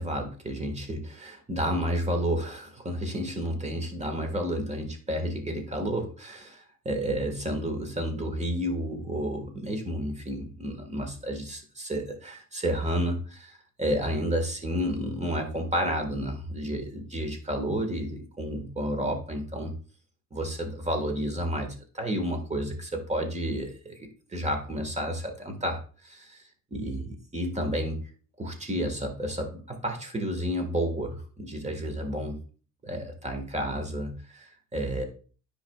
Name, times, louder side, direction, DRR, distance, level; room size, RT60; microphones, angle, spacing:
voice 1, 0.0-19.7 20.3-27.0 27.3-28.0 28.4-32.4 32.8-35.0, equal, 20° right, 5 dB, 1.6 m, -31 dB
9.7 x 5.1 x 2.3 m, 0.40 s
cardioid pair, 90°, 30 cm